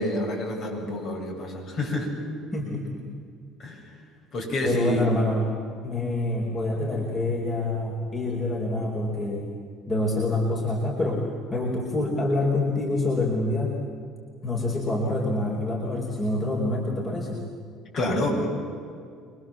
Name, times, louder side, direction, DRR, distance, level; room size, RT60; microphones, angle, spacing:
voice 1, 0.0-2.1 3.6-3.8 4.3-5.1 17.9-18.5, left 1 dB, 55° left, 0 dB, 7.8 m, -28 dB
voice 2, 2.5-3.0 4.6-5.5 5.8-9.5 9.9-11.2 11.5-13.7 14.4-17.4, left 2 dB, 30° left, -1 dB, 4.7 m, -26 dB
26.0 x 22.0 x 7.7 m, 2.3 s
supercardioid pair, 75°, 0 cm